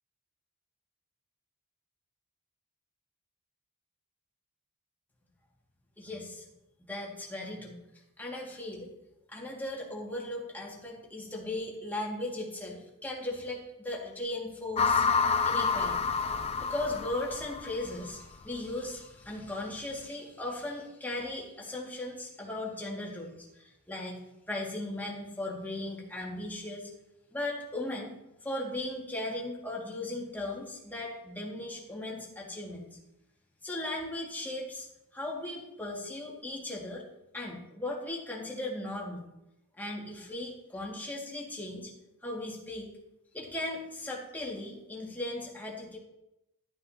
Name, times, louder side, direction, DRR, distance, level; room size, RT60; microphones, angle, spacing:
voice 1, 6.0-6.5 6.9-7.8 8.2-8.9 9.3-15.0 15.4-24.1 24.5-26.9 27.3-28.1 28.4-32.9 33.6-34.9 35.1-37.0 37.3-39.3 39.8-41.9 42.2-42.9 43.3-46.0, left 1 dB, 10° left, -3 dB, 2.1 m, -37 dB
sound 1, 14.8-18.1, left 5 dB, 25° left, 0.4 m, -28 dB
13.0 x 9.3 x 2.8 m, 0.90 s
head